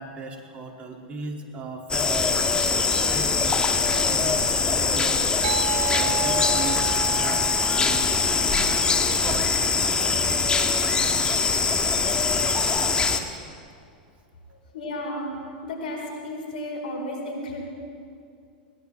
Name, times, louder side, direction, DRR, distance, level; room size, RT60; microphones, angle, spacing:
voice 1, 0.0-2.4 2.7-3.6 3.9-5.1 5.9-6.8 7.1-8.3 8.6-9.5 10.6-10.9 11.4-11.5 12.0-12.1 12.7-13.1, right 3 dB, 30° right, 0 dB, 2.7 m, -37 dB
sound 1, 1.9-13.2, left 4 dB, 20° left, 1.4 m, -22 dB
sound 2, 5.4-10.4, right 8 dB, 65° right, 4.3 m, -33 dB
voice 2, 14.5-17.6, left 1 dB, 80° left, -1 dB, 4.8 m, -33 dB
21.5 x 19.0 x 3.5 m, 2.5 s
hypercardioid pair, 105°, 5 cm